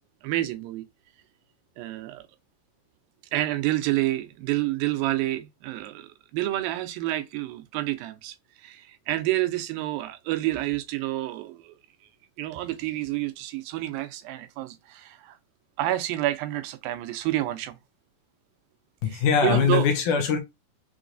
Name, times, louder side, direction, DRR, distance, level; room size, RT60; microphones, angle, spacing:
voice 1, 0.2-0.9 1.8-2.2 3.3-11.7 12.4-15.4 15.8-17.8 19.1-19.9, right 15 dB, 90° right, 2.4 m, -29 dB
voice 2, 19.0-20.4, left 6 dB, 75° left, 2.1 m, -22 dB
6.0 x 3.1 x 2.5 m
omnidirectional pair, 4.0 m